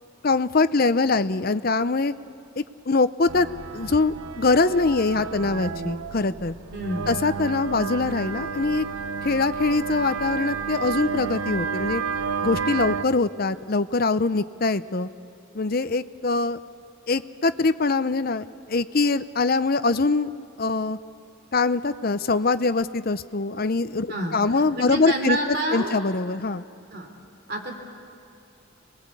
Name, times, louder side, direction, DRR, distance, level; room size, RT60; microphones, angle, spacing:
voice 1, 0.2-2.1 2.6-3.5 3.7-6.5 7.1-8.8 9.2-12.0 12.4-15.1 15.5-16.6 17.1-20.3 20.6-21.0 21.5-26.6, left 3 dB, 45° left, 13 dB, 0.6 m, -23 dB
sound 1, 3.3-13.0, right 5 dB, 90° right, 0.8 m, -31 dB
voice 2, 6.7-7.1 24.1-24.4 24.7-25.9 26.9-27.1 27.5-27.7, right 1 dB, 50° right, 3 dB, 3.1 m, -28 dB
27.5 x 20.5 x 8.4 m, 2.7 s
head